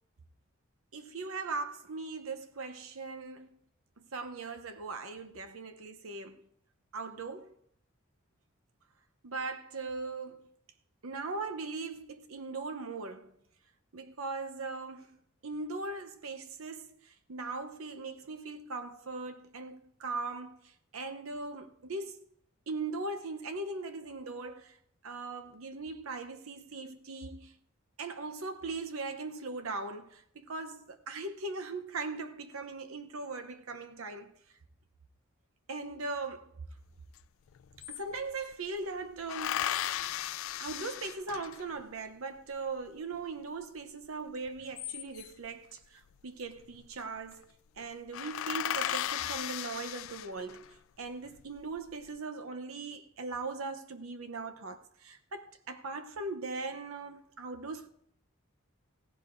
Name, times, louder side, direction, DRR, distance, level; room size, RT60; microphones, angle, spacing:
voice 1, 0.9-3.6 4.0-6.4 6.9-7.5 9.2-10.5 11.0-13.4 13.9-22.2 22.7-24.8 25.0-27.5 28.0-34.3 35.7-36.5 37.9-39.7 40.6-57.9, right 3 dB, 75° right, 0.8 m, -39 dB
sound 1, 37.2-37.3 37.5-38.5 39.3-41.8 44.5-45.5 46.6-47.0 47.3-47.4 47.8-47.9 48.1-50.7 51.3-51.9, left 12 dB, 70° left, 0.3 m, -36 dB
16.5 x 15.0 x 2.6 m
head